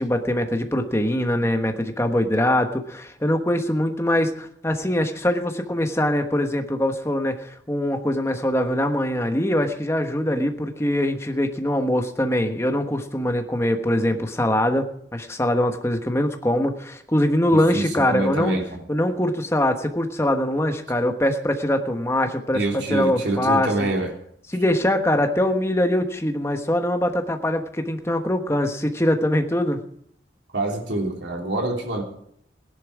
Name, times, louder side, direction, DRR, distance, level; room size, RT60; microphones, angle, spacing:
voice 1, 0.0-18.6 18.9-22.6 22.9-23.9 24.5-29.8, left 1 dB, 15° left, 5 dB, 1.2 m, -23 dB
voice 2, 17.5-18.8 22.5-24.1 30.5-32.0, right 2 dB, 75° right, 1 dB, 3.3 m, -26 dB
16.5 x 11.0 x 4.9 m, 0.68 s
head